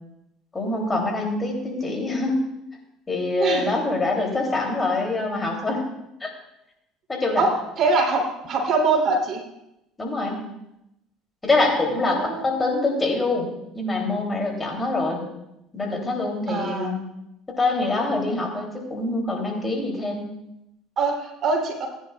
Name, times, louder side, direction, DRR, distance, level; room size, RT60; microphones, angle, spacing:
voice 1, 0.5-2.5 3.1-5.8 6.2-6.3 7.1-7.5 10.0-10.4 11.4-13.5 13.7-15.2 15.7-17.0 17.5-20.3, left 2 dB, 20° left, 1 dB, 3.1 m, -25 dB
voice 2, 3.4-3.7 7.4-9.4 12.0-12.5 16.5-16.9 21.0-21.9, right 3 dB, 50° right, 2 dB, 3.2 m, -23 dB
20.0 x 10.5 x 2.4 m, 0.86 s
supercardioid pair, 90°, 0 cm